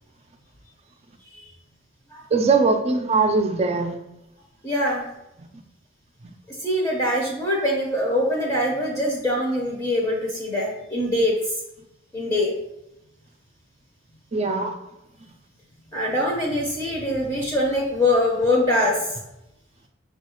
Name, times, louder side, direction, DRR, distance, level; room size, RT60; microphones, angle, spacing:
voice 1, 2.3-4.0 14.3-14.7, right 4 dB, 35° right, 5 dB, 0.4 m, -21 dB
voice 2, 4.6-5.1 6.5-11.3 12.1-12.5 15.9-19.2, left 1 dB, 20° left, -2 dB, 0.7 m, -23 dB
6.2 x 2.4 x 3.0 m, 0.88 s
head